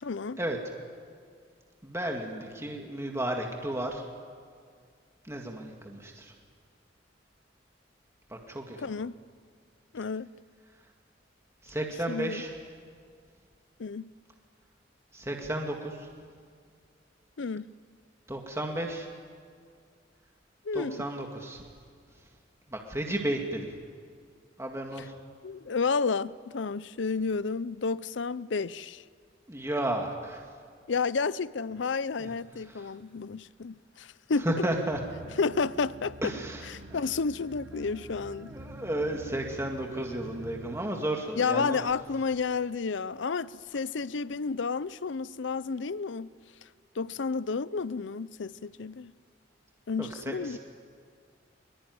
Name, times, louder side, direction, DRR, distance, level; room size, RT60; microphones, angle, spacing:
voice 1, 0.0-0.4 8.8-9.1 9.9-10.3 12.1-12.4 13.8-14.1 17.4-17.7 20.6-21.0 25.4-29.0 30.9-34.5 35.4-36.3 36.7-38.5 41.4-46.3 47.0-49.1 49.9-50.6, left 4 dB, 70° left, 0.6 m, -31 dB
voice 2, 1.8-4.1 5.2-6.3 8.3-8.8 11.6-12.5 15.1-16.1 18.3-19.1 20.7-21.6 22.7-23.7 24.6-25.1 29.5-30.4 32.2-32.3 32.7-32.9 34.4-35.0 36.2-37.0 37.8-41.9 50.0-50.6, right 1 dB, 15° right, 2.1 m, -33 dB
sound 1, 34.9-40.9, right 2 dB, 85° right, 1.1 m, -47 dB
23.5 x 23.0 x 9.6 m
head